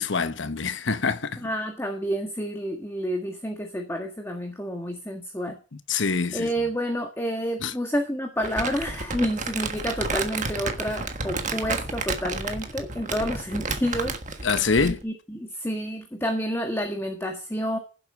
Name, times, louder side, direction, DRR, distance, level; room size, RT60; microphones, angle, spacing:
voice 1, 0.0-1.4 5.9-6.5 7.6-7.7 14.4-15.0, left 4 dB, 65° left, 1.0 m, -25 dB
voice 2, 1.4-5.6 6.3-14.5 14.8-17.8, equal, 10° left, 1.7 m, -29 dB
Crumpling crinkling, 8.4-15.0, right 3 dB, 40° right, 1.5 m, -31 dB
16.0 x 7.9 x 4.9 m
head